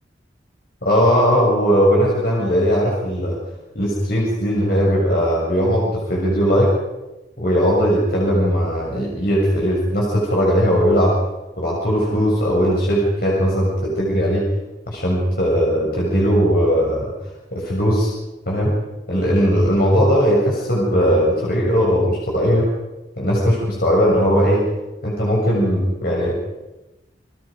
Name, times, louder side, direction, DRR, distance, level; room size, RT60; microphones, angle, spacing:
voice 1, 0.8-3.4 3.7-6.7 7.4-11.1 11.6-14.4 14.9-17.1 17.5-18.1 18.4-18.7 19.1-22.7 23.2-24.6 25.0-26.4, equal, 55° left, -3 dB, 6.8 m, -18 dB
29.5 x 24.5 x 5.3 m, 1.0 s
head